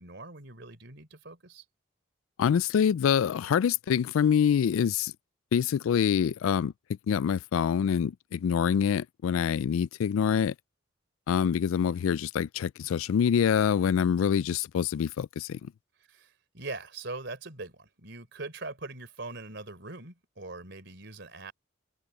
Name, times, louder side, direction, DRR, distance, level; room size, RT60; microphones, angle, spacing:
voice 1, 0.0-1.6 16.1-21.5, right 3 dB, 55° right, 4.0 m, -42 dB
voice 2, 2.4-5.1 5.5-6.7 7.1-10.5 11.3-15.7, left 7 dB, 80° left, 0.3 m, -25 dB
head